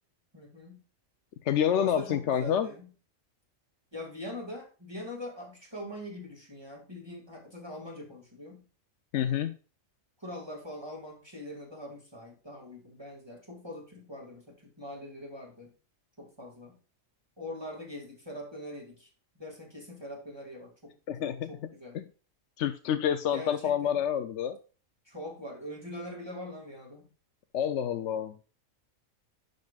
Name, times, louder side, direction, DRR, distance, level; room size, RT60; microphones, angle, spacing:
voice 1, 0.3-0.8 1.7-2.9 3.9-8.7 9.1-9.4 10.2-15.7 16.2-16.8 17.4-19.1 19.4-20.9 21.2-22.0 23.3-24.0 25.1-27.0, left 1 dB, 20° right, -1 dB, 2.1 m, -43 dB
voice 2, 1.4-2.7 9.1-9.5 21.1-21.5 21.9-22.0 22.6-24.6 27.5-28.4, left 9 dB, 65° left, 8 dB, 0.9 m, -28 dB
10.5 x 5.3 x 2.3 m, 0.36 s
omnidirectional pair, 1.4 m